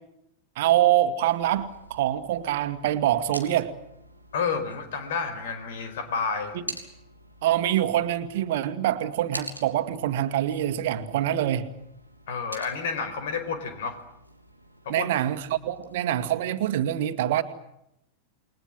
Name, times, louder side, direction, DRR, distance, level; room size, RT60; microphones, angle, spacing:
voice 1, 0.6-3.7 6.5-6.6 7.4-11.7 14.9-17.4, right 12 dB, 55° right, 10 dB, 2.0 m, -25 dB
sound 1, 1.2-16.0, equal, 90° left, 3.3 m, -46 dB
voice 2, 4.3-6.6 12.3-14.0 14.8-15.1, left 5 dB, 55° left, 10 dB, 5.0 m, -30 dB
29.0 x 21.5 x 7.8 m, 0.80 s
figure-of-eight pair, 90°, 0 cm